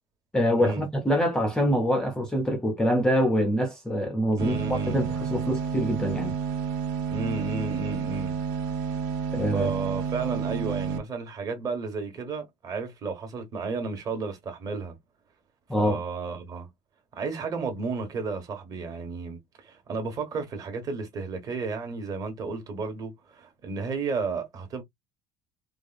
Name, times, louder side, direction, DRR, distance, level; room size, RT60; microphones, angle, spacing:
voice 1, 0.3-6.4 9.3-9.7 15.7-16.0, equal, 5° left, 0.5 m, -25 dB
voice 2, 4.3-5.2 7.1-8.4 9.5-15.0 15.8-16.7 17.1-24.8, right 4 dB, 30° right, 1.3 m, -33 dB
sound 1, 4.4-11.0, right 6 dB, 80° right, 1.5 m, -30 dB
4.6 x 2.3 x 2.4 m
cardioid pair, 180°, 12 cm